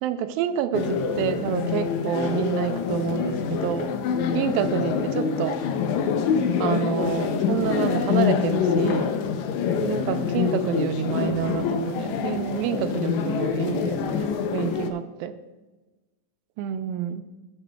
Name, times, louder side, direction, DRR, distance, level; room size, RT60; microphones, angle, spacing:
voice 1, 0.0-3.9 4.3-5.6 6.6-9.2 9.8-15.3 16.6-17.2, right 9 dB, 85° right, 9 dB, 2.3 m, -28 dB
sound 1, 0.7-14.9, left 7 dB, 85° left, 1.6 m, -25 dB
14.5 x 8.9 x 2.3 m, 1.2 s
omnidirectional pair, 4.1 m